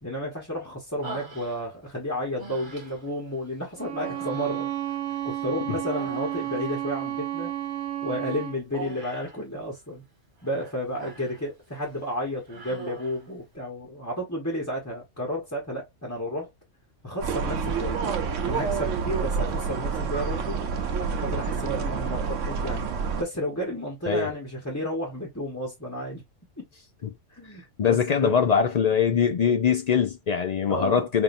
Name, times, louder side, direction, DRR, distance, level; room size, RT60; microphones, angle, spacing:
voice 1, 0.0-4.7 5.2-7.5 8.0-10.0 10.4-16.5 17.0-18.1 18.4-20.6 21.0-22.9 23.2-26.2 26.6-26.7 27.3-28.4 30.7-31.1, equal, 15° left, 1.1 m, -32 dB
Human voice, 1.0-1.9 2.4-3.1 3.9-5.4 5.7-6.7 8.7-9.4 10.4-11.5 11.8-12.0 12.5-13.3, right 3 dB, 40° right, 1.5 m, -41 dB
Bowed string instrument, 3.8-8.6, right 12 dB, 65° right, 1.1 m, -32 dB
sound 1, 17.2-23.2, right 5 dB, 90° right, 1.1 m, -28 dB
voice 2, 27.8-31.2, left 7 dB, 60° left, 0.4 m, -22 dB
5.5 x 2.7 x 2.5 m
omnidirectional pair, 1.3 m